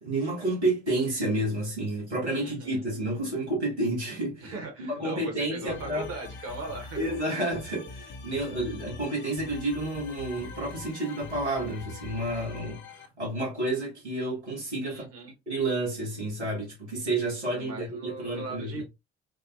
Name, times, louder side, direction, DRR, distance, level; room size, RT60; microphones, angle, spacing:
voice 1, 0.0-4.5 4.8-6.1 7.0-15.1 15.5-18.8, right 2 dB, 90° right, 1.1 m, -30 dB
voice 2, 2.2-2.8 4.4-7.4 14.8-15.3 17.5-18.8, right 2 dB, 45° right, 1.1 m, -39 dB
sound 1, 5.7-13.1, left 4 dB, 35° left, 0.6 m, -43 dB
3.4 x 2.1 x 2.4 m
figure-of-eight pair, 50°, 33 cm